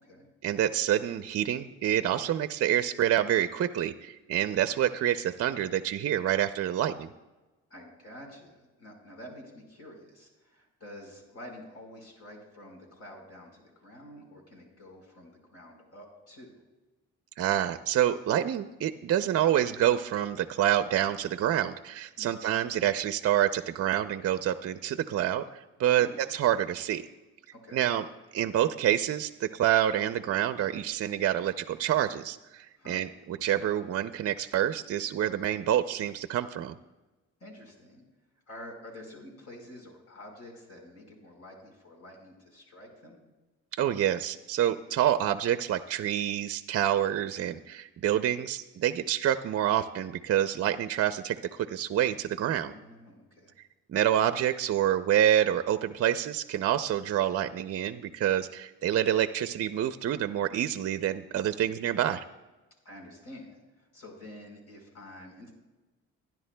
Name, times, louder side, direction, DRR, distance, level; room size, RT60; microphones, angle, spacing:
voice 1, 0.4-7.1 17.4-25.4 25.8-27.0 27.7-28.1 28.3-36.7 43.8-52.7 53.9-62.2, right 11 dB, 50° right, 11 dB, 0.5 m, -27 dB
voice 2, 7.7-16.5 22.2-22.4 26.0-26.2 27.5-27.8 32.8-33.1 37.4-38.0 38.5-43.3 52.4-53.5 61.6-61.7 62.8-65.5, left 1 dB, 55° left, 1 dB, 4.8 m, -48 dB
23.5 x 10.5 x 2.2 m, 1.1 s
cardioid pair, 90°, 30 cm